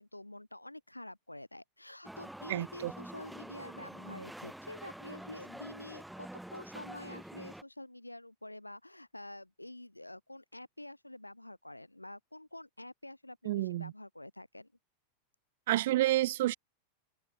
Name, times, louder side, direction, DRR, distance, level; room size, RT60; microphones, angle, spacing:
voice 1, 0.0-14.7, left 1 dB, 85° left, 5.6 m, -48 dB
sound 1, 2.0-7.6, right 1 dB, 5° right, 4.2 m, -47 dB
voice 2, 2.5-2.9 13.4-13.9 15.7-16.5, right 15 dB, 55° right, 0.8 m, -29 dB
figure-of-eight pair, 90°, 0 cm